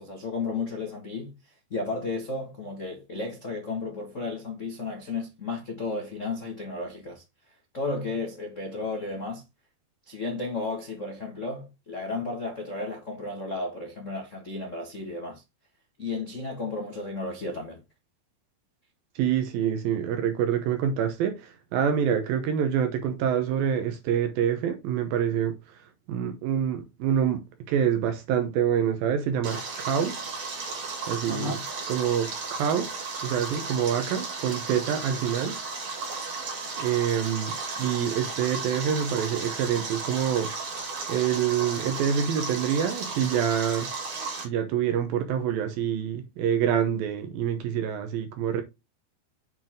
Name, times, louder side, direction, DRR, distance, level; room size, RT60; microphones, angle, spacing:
voice 1, 0.0-1.3 1.7-7.2 7.7-9.4 10.1-15.4 16.0-17.8 31.3-31.6, left 3 dB, 85° left, 0.6 m, -33 dB
voice 2, 19.2-25.6 26.1-30.3 31.1-31.6 31.9-32.9 33.2-35.6 36.8-40.5 41.1-43.9 44.4-48.6, right 8 dB, 75° right, 2.7 m, -26 dB
Stream, 29.4-44.4, right 4 dB, 50° right, 3.4 m, -34 dB
7.8 x 4.7 x 3.6 m
omnidirectional pair, 4.3 m